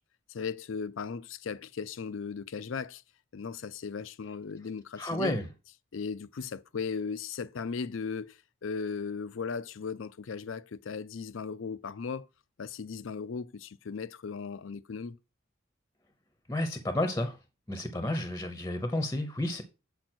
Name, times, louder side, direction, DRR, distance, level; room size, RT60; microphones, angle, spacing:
voice 1, 0.3-3.0 3.3-5.4 5.9-12.3 12.6-15.2, left 5 dB, 75° left, 0.5 m, -37 dB
voice 2, 5.0-5.5 16.5-17.4 17.7-19.6, left 1 dB, 15° left, 0.8 m, -31 dB
7.7 x 5.3 x 4.4 m
head